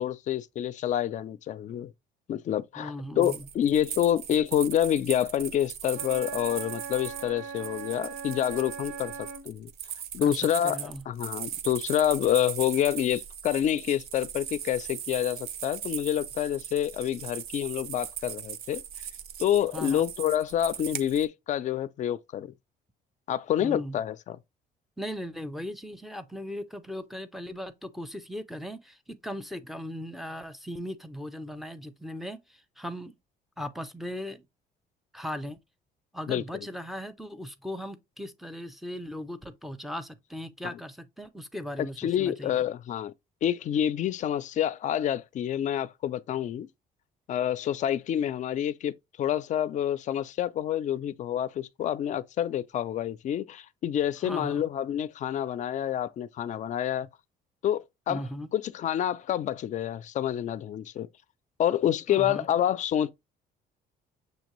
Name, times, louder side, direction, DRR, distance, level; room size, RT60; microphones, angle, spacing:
voice 1, 0.0-1.9 2.3-9.1 9.4-9.7 10.1-18.8 19.4-22.5 23.3-24.4 36.3-36.4 40.7-40.8 42.0-43.1 43.4-46.7 47.3-57.1 57.6-58.2 58.5-61.1 61.6-63.1, left 10 dB, 45° left, 0.4 m, -28 dB
voice 2, 2.8-3.5 10.2-11.0 19.7-20.1 23.6-24.0 25.0-33.2 33.6-34.5 35.1-35.6 36.1-42.6 54.2-54.6 58.1-58.5 62.1-62.5, equal, ahead, 0.5 m, -38 dB
sound 1, 3.2-21.2, right 9 dB, 70° right, 0.5 m, -39 dB
Wind instrument woodwind instrument, 5.9-9.5, right 6 dB, 85° right, 0.9 m, -40 dB
6.5 x 2.6 x 3.0 m
cardioid pair, 110°, 17 cm